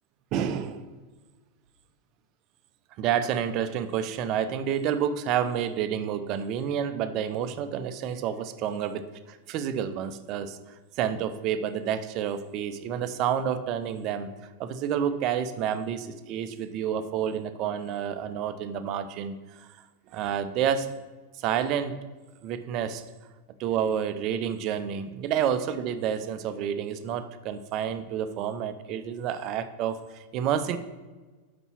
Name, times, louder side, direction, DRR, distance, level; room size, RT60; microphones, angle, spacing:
voice 1, 0.3-0.9 3.0-10.6 10.9-14.3 14.6-19.7 20.1-20.9 21.4-22.0 22.4-23.0 23.6-30.8, right 8 dB, 40° right, 11 dB, 0.5 m, -29 dB
5.8 x 5.4 x 5.7 m, 1.3 s
figure-of-eight pair, 90°, 0 cm